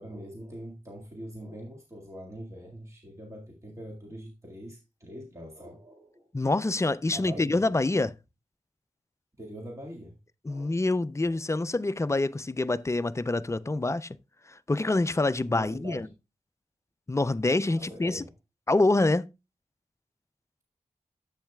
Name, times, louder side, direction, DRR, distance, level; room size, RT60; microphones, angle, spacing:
voice 1, 0.0-6.3 7.1-7.7 9.4-10.2 10.5-10.9 11.2-11.4 15.5-16.1 17.7-18.3, equal, 20° right, 1.9 m, -43 dB
voice 2, 6.3-8.1 10.5-14.1 14.5-16.1 17.1-18.2 18.7-19.3, left 2 dB, 20° left, 0.4 m, -26 dB
10.5 x 8.1 x 2.3 m
wide cardioid pair, 75°, 14 cm